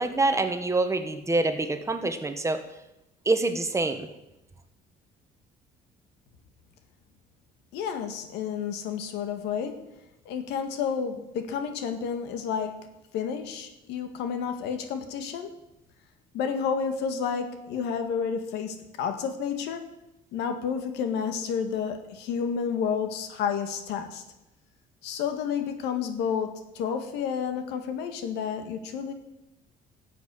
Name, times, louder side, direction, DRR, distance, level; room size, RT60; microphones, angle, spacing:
voice 1, 0.0-2.6 3.2-4.1, right 2 dB, 15° right, 7 dB, 1.5 m, -26 dB
voice 2, 7.7-9.8 10.3-12.7 13.1-15.5 16.3-19.8 20.3-24.2 25.0-29.1, left 7 dB, 90° left, 7 dB, 1.8 m, -30 dB
13.0 x 7.9 x 8.3 m, 0.93 s
cardioid pair, 110°, 17 cm